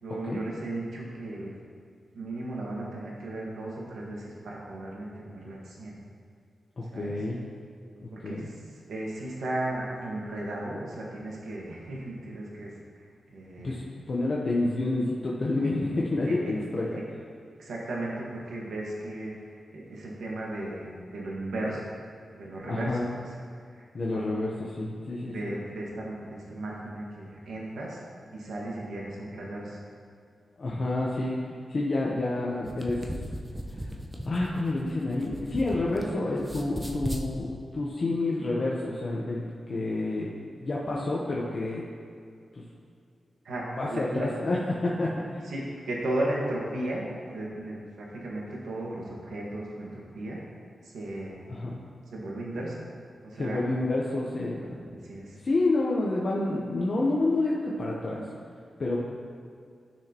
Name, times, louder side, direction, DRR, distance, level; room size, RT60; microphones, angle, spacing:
voice 1, 0.0-1.5 2.1-6.0 6.9-7.1 8.1-8.4 8.9-12.7 13.0-13.7 15.6-15.7 16.3-16.5 17.6-20.9 21.1-21.9 22.3-23.0 23.8-24.3 25.2-28.0 28.3-29.8 43.4-44.3 45.4-47.1 47.3-50.4 50.8-51.4 52.1-52.8 53.2-53.6 54.6-55.4, right 1 dB, 90° right, -4 dB, 1.6 m, -35 dB
voice 2, 6.8-7.4 8.2-8.5 13.6-17.0 22.7-23.1 23.9-25.5 30.6-31.3 31.7-33.0 33.8-33.9 34.2-37.5 37.7-40.3 40.6-41.8 42.5-42.6 43.8-45.4 51.5-51.7 53.3-55.0 55.4-58.2 58.8-59.0, left 2 dB, 45° left, -4 dB, 0.9 m, -29 dB
sound 1, 32.5-36.1 36.4-37.3, equal, 10° right, 0.8 m, -36 dB
12.0 x 6.1 x 3.0 m, 2.3 s
wide cardioid pair, 100°, 0 cm